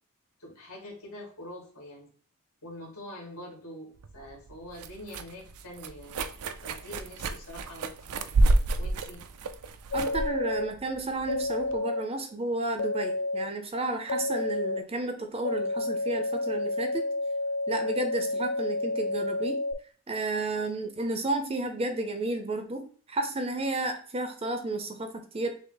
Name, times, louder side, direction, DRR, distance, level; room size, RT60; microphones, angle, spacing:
voice 1, 0.4-2.1 2.6-6.3 6.6-8.1 8.8-9.2, left 1 dB, 80° left, -2 dB, 1.9 m, -44 dB
sound 1, 4.0-11.8, right 2 dB, 85° right, 0.4 m, -30 dB
sound 2, 9.9-10.6 11.3-12.0 12.8-13.5 14.1-14.8 15.4-19.7, left 2 dB, 65° left, 0.3 m, -30 dB
voice 2, 9.9-17.0 17.7-19.6 20.1-25.5, right 2 dB, 25° right, 6 dB, 0.5 m, -32 dB
5.9 x 2.0 x 3.8 m, 0.43 s
head